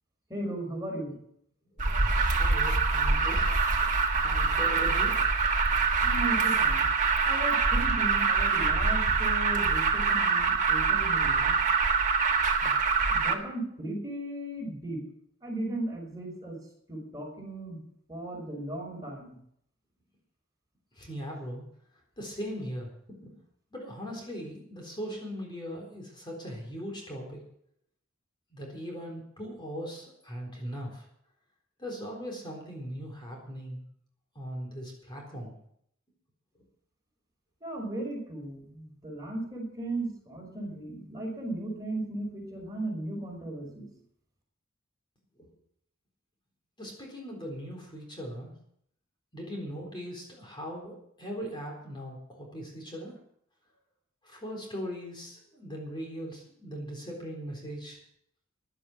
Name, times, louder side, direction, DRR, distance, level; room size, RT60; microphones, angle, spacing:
voice 1, 0.3-1.1 6.0-6.9 7.3-11.6 12.6-12.8 13.1-15.0 15.4-16.6 16.9-17.8 18.1-19.4 37.6-43.9, right 1 dB, 20° right, -1 dB, 5.3 m, -36 dB
Alarm, 1.8-13.3, right 4 dB, 40° right, 1.7 m, -25 dB
voice 2, 2.2-3.5 4.2-5.3 21.0-21.6 22.2-22.9 23.2-23.3 23.7-27.4 28.5-31.0 31.8-33.8 34.4-35.6 45.4-45.5 46.8-48.6 49.3-53.2 54.2-58.0, equal, 25° left, 0 dB, 4.0 m, -39 dB
15.0 x 11.5 x 6.2 m, 0.70 s
head